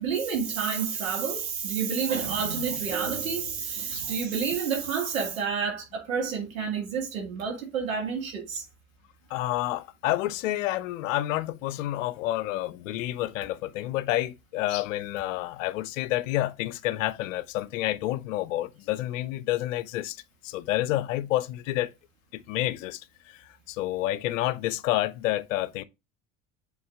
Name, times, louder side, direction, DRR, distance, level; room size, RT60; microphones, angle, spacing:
voice 1, 0.0-8.6, right 6 dB, 80° right, 2.2 m, -29 dB
voice 2, 9.3-20.2 20.4-21.9 22.3-23.0 23.3-25.8, left 15 dB, 70° left, 0.7 m, -29 dB
7.8 x 3.8 x 3.6 m
hypercardioid pair, 70°, 40 cm